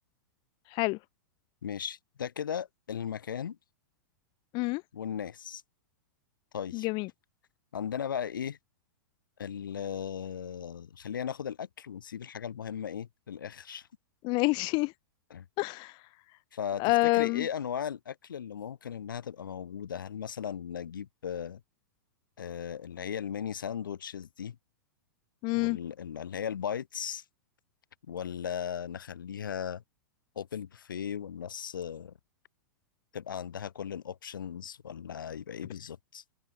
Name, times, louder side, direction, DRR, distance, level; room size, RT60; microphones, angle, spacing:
voice 1, 1.6-3.6 4.9-5.6 6.5-6.9 7.7-8.6 9.4-13.9 15.3-15.5 16.5-16.8 17.1-21.6 22.4-24.6 25.5-27.2 28.1-29.8 30.4-32.1 33.1-36.2, left 8 dB, 75° left, 6.0 m, -37 dB
voice 2, 6.7-7.1 14.2-14.9 15.6-15.9 16.8-17.5 25.4-25.8, left 26 dB, 45° left, 4.3 m, -27 dB
hypercardioid pair, 110°, 11 cm